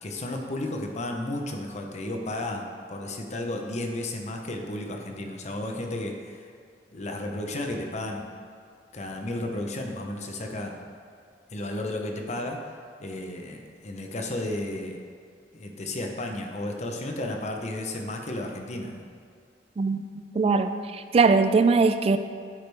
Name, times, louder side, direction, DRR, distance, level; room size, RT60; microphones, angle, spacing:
voice 1, 0.0-6.5 6.9-8.3 8.9-10.8 11.5-15.0 15.5-19.0, left 1 dB, 40° left, 2 dB, 0.8 m, -33 dB
voice 2, 19.8-22.2, right 4 dB, 35° right, 9 dB, 0.3 m, -21 dB
10.5 x 5.0 x 3.4 m, 2.2 s
head